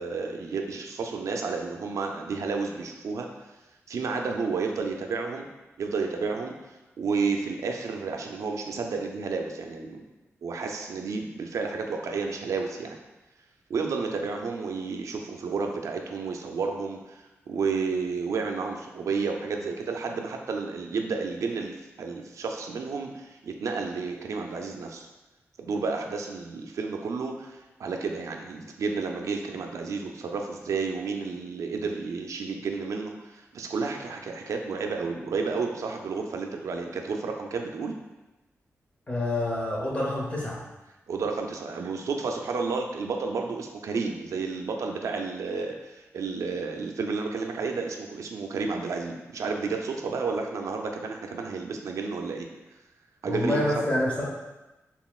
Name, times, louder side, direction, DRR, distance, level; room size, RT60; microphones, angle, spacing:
voice 1, 0.0-3.3 3.9-5.5 5.8-10.0 10.4-13.0 13.7-25.1 25.6-38.0 41.1-52.5 53.2-53.6, right 4 dB, 80° right, 3 dB, 0.4 m, -31 dB
voice 2, 39.1-40.6 53.3-54.3, left 1 dB, 25° left, -4 dB, 0.9 m, -27 dB
4.1 x 3.6 x 2.4 m, 1.1 s
wide cardioid pair, 150°, 5 cm